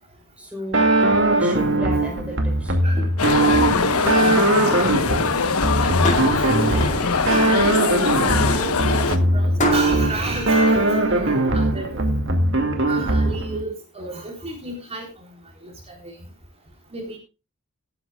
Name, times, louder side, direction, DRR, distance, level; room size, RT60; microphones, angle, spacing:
voice 1, 0.4-0.9 1.2-2.9 7.2-7.3, equal, 5° right, 2 dB, 4.3 m, -36 dB
sound 1, 0.7-13.6, right 2 dB, 60° right, 2.4 m, -20 dB
voice 2, 2.8-3.4 5.1-7.8 8.5-10.8 11.1-12.1 12.9-15.0 15.6-15.7 16.0-16.1 16.9-17.2, right 2 dB, 30° right, 1 dB, 3.8 m, -33 dB
sound 2, 3.2-9.2, left 5 dB, 85° left, 1.1 m, -22 dB
sound 3, 5.6-11.5, left 2 dB, 35° left, 2.4 m, -30 dB
19.0 x 9.9 x 2.4 m, 0.28 s
head